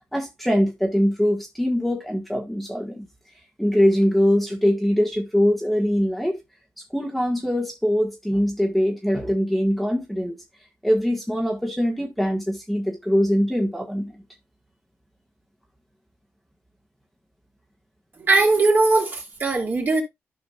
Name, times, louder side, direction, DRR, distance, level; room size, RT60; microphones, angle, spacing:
voice 1, 0.1-3.1 3.6-6.4 6.9-10.4 10.8-14.1, equal, ahead, 1.7 m, -22 dB
voice 2, 18.2-20.0, right 3 dB, 40° right, 3.2 m, -20 dB
13.5 x 5.0 x 2.4 m
cardioid pair, 85°, 5 cm